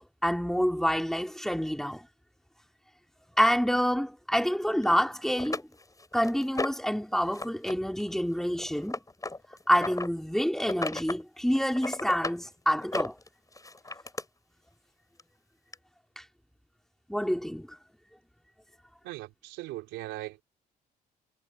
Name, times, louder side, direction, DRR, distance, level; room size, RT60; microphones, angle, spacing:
voice 1, 0.0-2.0 3.4-5.6 6.1-9.0 9.7-13.2 16.2-16.3 17.1-17.7, equal, ahead, 3.8 m, -27 dB
sound 1, 4.8-4.9 5.4-6.9 7.3-7.7 8.0-10.1 10.6-11.2 11.5-12.4 12.8-14.2 15.2-15.3 15.7-15.8, left 2 dB, 20° left, 6.9 m, -35 dB
voice 2, 19.0-20.4, right 18 dB, 80° right, 4.2 m, -39 dB
supercardioid pair, 60°, 19 cm